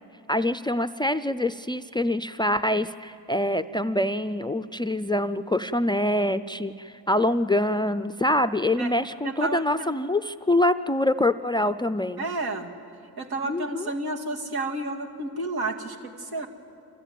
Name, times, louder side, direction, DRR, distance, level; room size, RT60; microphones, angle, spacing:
voice 1, 0.3-12.3 13.4-13.9, left 1 dB, 10° left, 12 dB, 0.4 m, -25 dB
voice 2, 9.2-9.9 12.2-12.7 13.2-16.5, right 2 dB, 70° right, 3 dB, 2.3 m, -31 dB
26.5 x 15.0 x 9.2 m, 2.5 s
cardioid pair, 75°, 39 cm